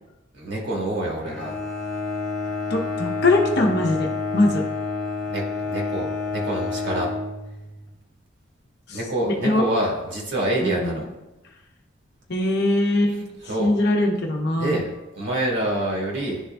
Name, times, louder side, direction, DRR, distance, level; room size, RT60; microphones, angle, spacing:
voice 1, 0.3-1.5 5.3-7.1 8.9-11.0 13.4-13.7 14.5-16.4, right 1 dB, 60° right, -2 dB, 1.5 m, -26 dB
Bowed string instrument, 1.2-7.9, left 3 dB, 5° left, 1.0 m, -29 dB
voice 2, 2.7-4.6 8.9-9.0 9.3-9.6 10.6-11.1 12.3-13.3 13.6-14.8, left 2 dB, 55° left, 1 dB, 0.9 m, -22 dB
11.0 x 3.9 x 2.3 m, 1.0 s
head